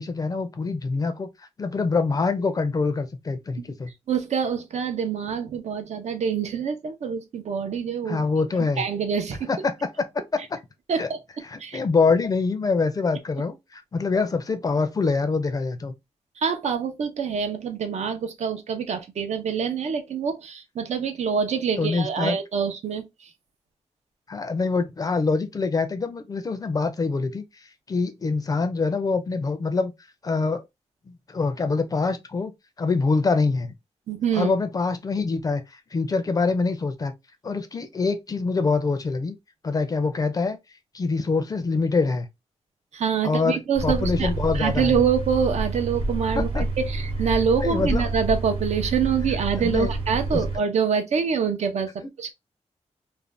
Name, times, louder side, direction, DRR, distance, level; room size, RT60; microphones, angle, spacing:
voice 1, 0.0-3.9 8.1-8.8 9.5-9.7 11.0-11.1 11.5-15.9 21.8-22.4 24.3-27.4 27.9-29.9 30.2-30.6 31.1-32.5 32.8-33.7 34.3-37.1 37.4-39.4 39.6-40.6 40.9-42.3 43.2-44.9 46.3-46.6 47.6-48.0 49.6-49.9 50.3-50.4, left 4 dB, 30° left, 0.4 m, -25 dB
voice 2, 4.1-8.3 8.8-9.5 10.9-11.2 11.6-11.8 16.4-23.3 34.1-34.5 42.9-44.3 44.5-51.9 52.2-52.3, right 6 dB, 75° right, 0.6 m, -25 dB
sound 1, 43.8-50.6, right 2 dB, 50° right, 0.9 m, -28 dB
2.5 x 2.1 x 3.2 m
wide cardioid pair, 170°, 12 cm